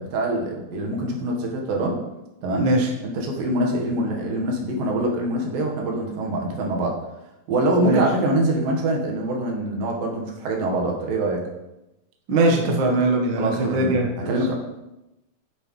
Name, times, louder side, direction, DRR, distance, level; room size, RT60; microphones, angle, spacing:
voice 1, 0.0-2.0 2.4-2.7 3.0-6.9 7.5-11.4 13.4-14.0 14.3-14.5, right 1 dB, 80° right, 0 dB, 3.1 m, -24 dB
voice 2, 2.6-2.9 7.8-8.0 12.3-14.3, right 2 dB, 65° right, 1 dB, 1.2 m, -21 dB
8.6 x 8.2 x 3.2 m, 0.95 s
omnidirectional pair, 4.0 m